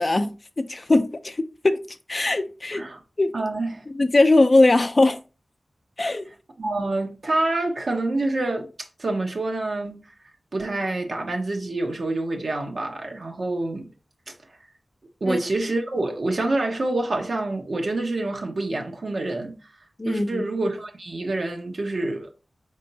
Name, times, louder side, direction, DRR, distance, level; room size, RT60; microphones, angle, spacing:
voice 1, 0.0-1.4 1.6-1.8 2.1-2.8 3.2-3.3 3.9-5.2 6.0-6.3 15.3-15.4 20.0-20.5, left 2 dB, 45° left, 0.5 m, -20 dB
voice 2, 3.3-3.8 6.6-8.7 9.0-10.0 10.5-13.9 15.2-19.5 20.0-22.3, right 2 dB, 70° right, 1.0 m, -27 dB
4.4 x 3.6 x 2.7 m
cardioid pair, 50°, 0 cm